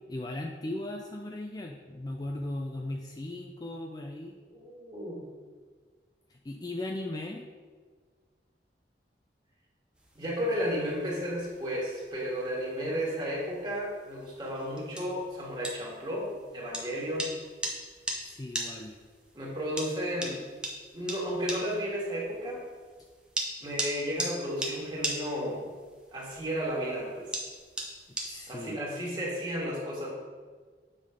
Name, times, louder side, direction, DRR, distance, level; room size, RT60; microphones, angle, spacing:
voice 1, 0.1-4.4 6.3-7.4 18.2-18.9 28.2-28.8, left 1 dB, 20° left, 1 dB, 0.4 m, -37 dB
voice 2, 4.5-5.3 10.1-17.3 19.3-20.5 20.9-22.6 23.6-25.6 26.1-27.3 28.5-30.1, equal, 25° right, -4 dB, 1.7 m, -33 dB
sound 1, 10.0-28.6, right 1 dB, 5° right, 0.7 m, -40 dB
7.4 x 3.8 x 4.9 m, 1.5 s
head